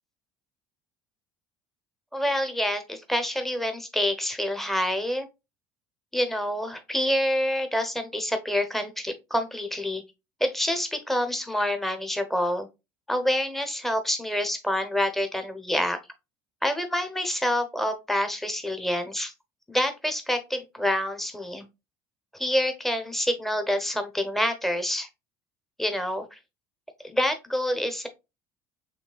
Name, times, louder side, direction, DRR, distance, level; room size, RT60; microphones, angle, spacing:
voice 1, 2.1-5.3 6.1-10.0 10.4-12.7 13.1-16.0 16.6-19.3 19.7-21.7 22.3-25.1 25.8-26.4 27.0-28.1, left 1 dB, ahead, 7 dB, 0.9 m, -27 dB
5.3 x 3.3 x 2.3 m, 0.24 s
hypercardioid pair, 75°, 14 cm